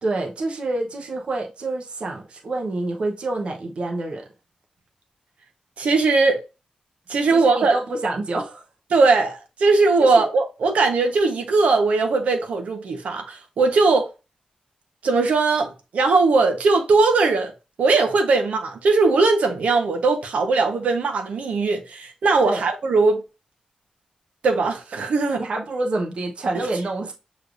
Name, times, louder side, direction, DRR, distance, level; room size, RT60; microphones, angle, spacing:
voice 1, 0.0-4.2 7.3-8.6 10.0-10.3 22.4-22.7 25.3-27.1, right 2 dB, 50° right, 1.0 m, -27 dB
voice 2, 5.8-6.4 7.1-7.8 8.9-14.1 15.0-17.5 17.8-23.2 24.4-25.4 26.5-26.7, right 3 dB, 85° right, 1.0 m, -19 dB
6.5 x 3.2 x 2.5 m
wide cardioid pair, 175°, 2 cm